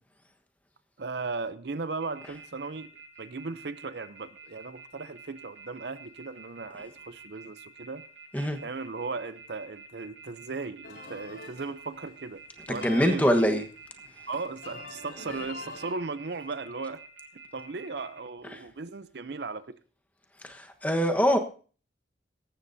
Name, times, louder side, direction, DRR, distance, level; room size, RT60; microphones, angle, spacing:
voice 1, 1.0-2.9 3.2-8.0 8.6-12.4 12.7-13.6 14.3-17.0 17.5-19.8, right 4 dB, 65° right, 0.7 m, -37 dB
sound 1, 2.0-18.2, right 4 dB, 90° right, 7.6 m, -49 dB
sound 2, 10.8-15.9, left 2 dB, 80° left, 4.2 m, -45 dB
voice 2, 12.7-13.6 18.5-18.6 20.4-21.4, equal, 10° left, 1.2 m, -24 dB
17.5 x 14.5 x 2.7 m
head